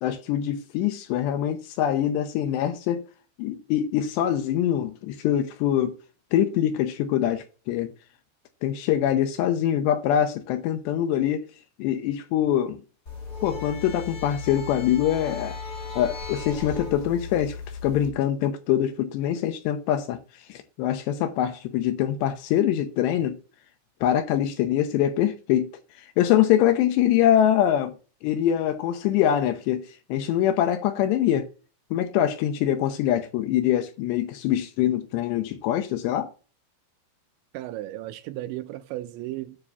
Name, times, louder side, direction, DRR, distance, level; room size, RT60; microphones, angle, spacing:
voice 1, 0.0-3.0 3.4-5.9 6.3-7.9 8.6-11.4 11.8-12.8 13.4-15.6 16.0-17.6 17.8-20.2 20.5-23.4 24.0-25.7 26.2-27.9 28.2-29.8 30.1-31.5 31.9-36.3, left 11 dB, 75° left, 2.8 m, -24 dB
sound 1, 13.1-18.1, left 4 dB, 50° left, 1.2 m, -36 dB
voice 2, 37.5-39.6, right 15 dB, 80° right, 2.8 m, -35 dB
9.7 x 3.7 x 6.9 m
omnidirectional pair, 5.4 m